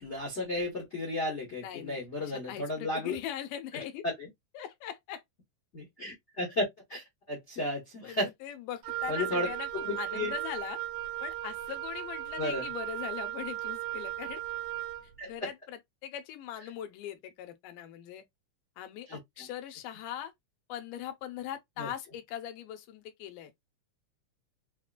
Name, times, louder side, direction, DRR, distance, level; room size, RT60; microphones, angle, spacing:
voice 1, 0.0-3.1 4.0-4.3 5.7-8.3 9.1-9.5 9.8-10.3 12.4-12.6 15.2-15.5 19.1-19.2 21.8-21.9, left 2 dB, 60° left, 0.7 m, -33 dB
voice 2, 1.6-4.0 4.5-5.2 8.0-9.7 10.0-10.8 11.2-14.4 15.3-18.2 18.8-20.3 20.7-23.5, left 10 dB, 85° left, 2.3 m, -41 dB
Wind instrument woodwind instrument, 8.8-15.1, right 14 dB, 75° right, 1.8 m, -36 dB
5.5 x 2.2 x 2.4 m
omnidirectional pair, 3.7 m